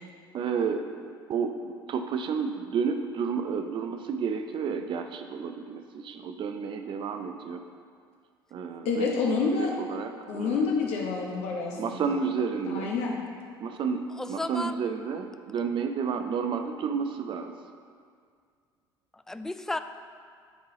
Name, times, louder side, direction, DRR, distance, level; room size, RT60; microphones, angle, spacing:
voice 1, 0.3-0.9 1.3-7.6 8.5-9.1 9.6-10.6 11.8-12.9 13.6-17.5, right 6 dB, 40° right, 6 dB, 0.6 m, -31 dB
voice 2, 8.8-9.7 10.3-12.2 12.7-13.2, left 4 dB, 60° left, -2 dB, 1.0 m, -28 dB
voice 3, 14.1-14.8 19.1-19.8, left 2 dB, 5° left, 9 dB, 0.3 m, -33 dB
9.7 x 3.9 x 3.8 m, 2.1 s
figure-of-eight pair, 60°, 13 cm